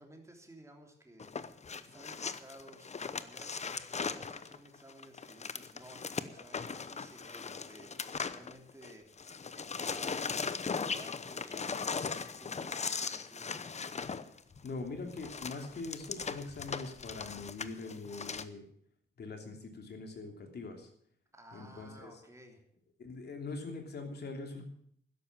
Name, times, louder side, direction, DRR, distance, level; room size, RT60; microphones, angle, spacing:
voice 1, 0.0-1.4 1.8-9.1 9.5-13.9 21.3-22.6, right 1 dB, 15° right, 2 dB, 3.2 m, -55 dB
sound 1, 1.2-8.9 9.2-18.4, left 5 dB, 35° left, 0.8 m, -39 dB
voice 2, 14.6-18.6 19.2-20.9 21.5-22.1 23.0-24.7, left 3 dB, 60° left, 4 dB, 3.1 m, -42 dB
12.5 x 11.0 x 7.3 m, 0.64 s
wide cardioid pair, 125°, 19 cm